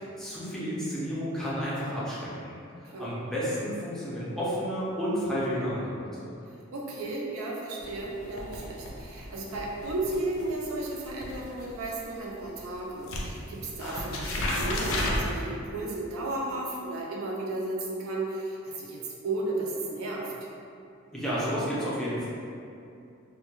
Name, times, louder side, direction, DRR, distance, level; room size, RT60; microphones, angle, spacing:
voice 1, 0.0-2.6 3.0-6.3 21.1-22.3, equal, ahead, -9 dB, 0.5 m, -31 dB
voice 2, 6.7-20.3, right 2 dB, 80° right, -3 dB, 0.5 m, -34 dB
sound 1, 7.8-12.8 13.0-15.3, left 1 dB, 65° left, 0.4 m, -34 dB
2.1 x 2.1 x 2.9 m, 2.6 s
head